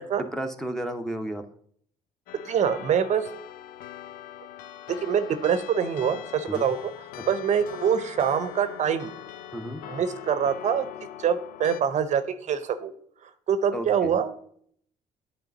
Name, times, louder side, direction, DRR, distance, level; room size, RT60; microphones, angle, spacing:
voice 1, 0.3-1.5 6.5-6.7 9.5-9.8 13.7-14.1, right 1 dB, 5° left, 7 dB, 0.8 m, -32 dB
sound 1, 2.3-11.8, left 11 dB, 80° left, 0.4 m, -41 dB
voice 2, 2.4-3.3 4.9-6.9 7.3-9.1 9.9-10.9 11.2-12.2 12.5-12.9 13.2-14.3, right 7 dB, 55° right, 11 dB, 0.7 m, -25 dB
8.9 x 3.3 x 5.2 m, 0.63 s
supercardioid pair, 75°, 14 cm